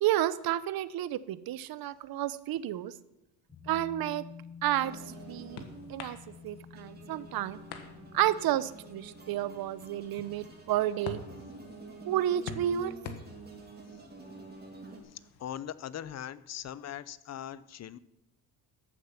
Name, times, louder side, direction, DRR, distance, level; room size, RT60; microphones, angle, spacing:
voice 1, 0.0-2.9 3.7-4.3 4.6-4.9 5.3-5.6 5.9-7.6 8.1-11.2 12.0-12.9, right 12 dB, 60° right, 17 dB, 0.7 m, -31 dB
sound 1, 3.5-12.6 12.9-13.0, left 6 dB, 15° left, 4.7 m, -51 dB
sound 2, 4.5-15.6, left 5 dB, 70° left, 1.5 m, -49 dB
sound 3, 4.7-15.0, right 2 dB, 25° right, 2.4 m, -49 dB
voice 2, 15.1-18.0, left 10 dB, 40° left, 17 dB, 0.6 m, -40 dB
14.0 x 7.3 x 5.7 m, 0.91 s
cardioid pair, 105°, 41 cm